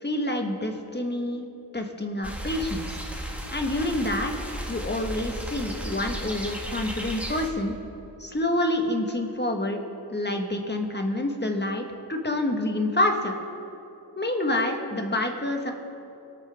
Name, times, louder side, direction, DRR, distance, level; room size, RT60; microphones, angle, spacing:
voice 1, 0.0-1.5 1.7-3.0 3.5-4.3 4.7-7.7 8.2-9.8 10.1-11.8 12.1-13.4 14.2-15.7, left 1 dB, 25° left, 3 dB, 1.3 m, -27 dB
sound 1, 2.2-7.5, equal, 5° right, 1.5 m, -35 dB
22.0 x 8.7 x 3.5 m, 2.9 s
wide cardioid pair, 80°, 43 cm